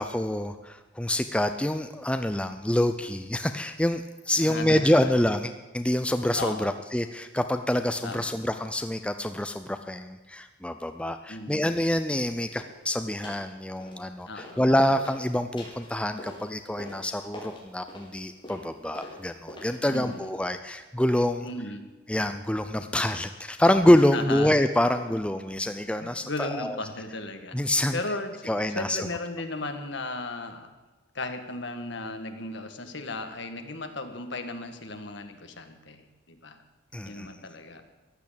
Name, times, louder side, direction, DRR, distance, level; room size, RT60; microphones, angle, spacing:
voice 1, 0.0-21.5 22.1-26.8 27.5-28.0 28.5-29.1 36.9-37.3, left 1 dB, 5° left, 8 dB, 0.5 m, -26 dB
voice 2, 4.4-5.1 6.3-6.7 8.0-8.3 11.3-11.8 14.3-14.6 19.9-20.3 21.4-21.9 24.1-24.5 25.0-25.1 26.0-27.6 27.9-30.7 31.1-36.6 37.0-37.8, left 2 dB, 60° left, 7 dB, 1.7 m, -36 dB
sound 1, 12.6-12.8 13.2-13.5 13.8-14.6 14.9-20.5, left 1 dB, 25° left, 4.8 m, -45 dB
14.5 x 11.0 x 8.8 m, 1.2 s
head